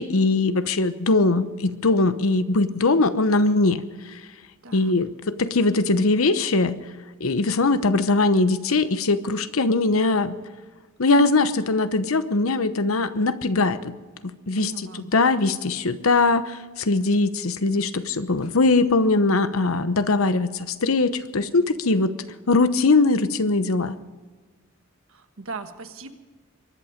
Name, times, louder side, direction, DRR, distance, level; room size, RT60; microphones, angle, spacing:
voice 1, 0.0-3.8 4.1-4.2 4.7-6.8 7.2-10.4 11.0-13.9 14.2-22.1 22.5-24.0, left 3 dB, 85° left, 12 dB, 0.9 m, -21 dB
voice 2, 14.5-15.1 25.1-26.1, right 3 dB, 75° right, 7 dB, 1.5 m, -38 dB
23.5 x 11.0 x 5.1 m, 1.3 s
head